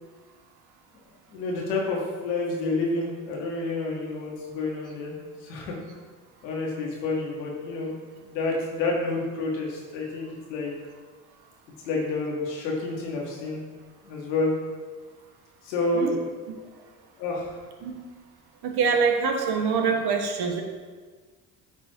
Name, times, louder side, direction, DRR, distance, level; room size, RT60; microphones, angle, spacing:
voice 1, 1.3-5.2 5.4-5.8 6.4-8.0 8.2-10.7 11.8-13.6 14.1-14.5 15.6-16.2 17.2-17.6, left 3 dB, 80° left, -1 dB, 1.8 m, -29 dB
voice 2, 18.6-20.6, right 5 dB, 50° right, 3 dB, 1.3 m, -24 dB
9.5 x 3.6 x 4.6 m, 1.4 s
hypercardioid pair, 55°, 49 cm